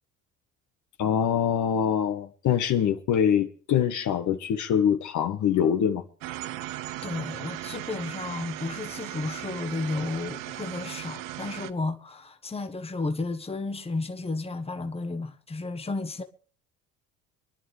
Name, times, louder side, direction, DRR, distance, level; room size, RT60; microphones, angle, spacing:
voice 1, 1.0-6.1, left 8 dB, 55° left, 1.5 m, -24 dB
sound 1, 6.2-11.7, right 15 dB, 60° right, 0.9 m, -37 dB
voice 2, 7.0-16.2, left 3 dB, 15° left, 1.4 m, -33 dB
26.0 x 11.0 x 3.4 m
hypercardioid pair, 60°, 36 cm